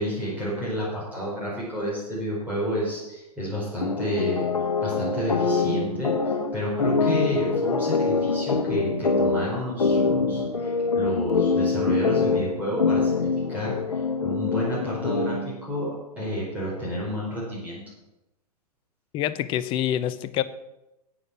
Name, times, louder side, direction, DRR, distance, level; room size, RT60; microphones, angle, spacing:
voice 1, 0.0-4.5 4.8-17.8, equal, 10° right, -7 dB, 5.0 m, -30 dB
sound 1, 3.8-15.6, left 4 dB, 70° left, 1.3 m, -24 dB
voice 2, 19.1-20.4, left 11 dB, 25° left, 14 dB, 0.6 m, -26 dB
9.9 x 8.8 x 6.2 m, 0.92 s
figure-of-eight pair, 105°, 20 cm